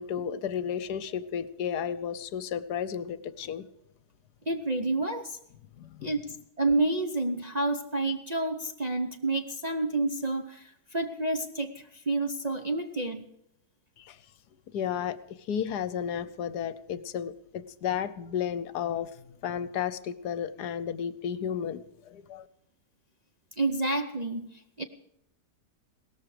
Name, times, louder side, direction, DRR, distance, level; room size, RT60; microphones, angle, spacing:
voice 1, 0.0-3.7 5.8-6.1 14.0-14.2 14.7-15.2 15.5-19.1 19.4-22.5, left 8 dB, 70° left, 16 dB, 1.3 m, -33 dB
voice 2, 4.5-5.4 6.0-13.3 23.6-24.8, right 2 dB, 35° right, 4 dB, 0.7 m, -29 dB
17.5 x 14.0 x 4.9 m, 0.77 s
omnidirectional pair, 1.8 m